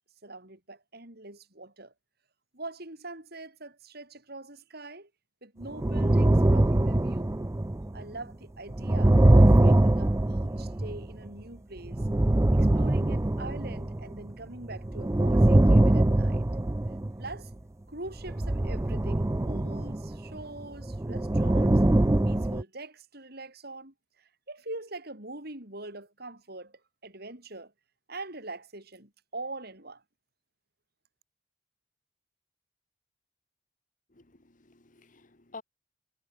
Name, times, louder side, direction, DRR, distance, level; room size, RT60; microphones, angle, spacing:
voice 1, 0.2-1.9 2.5-5.1 5.4-7.3 7.9-12.0 12.5-16.5 17.2-17.5 17.9-21.8 22.2-27.7 28.1-30.0, right 2 dB, 55° right, 7.5 m, -43 dB
sound 1, 5.6-8.0 8.7-11.4 11.8-14.3 14.6-17.5 18.1-22.6, right 1 dB, 15° right, 0.5 m, -23 dB
voice 2, 34.1-35.6, left 3 dB, 45° left, 1.8 m, -50 dB
head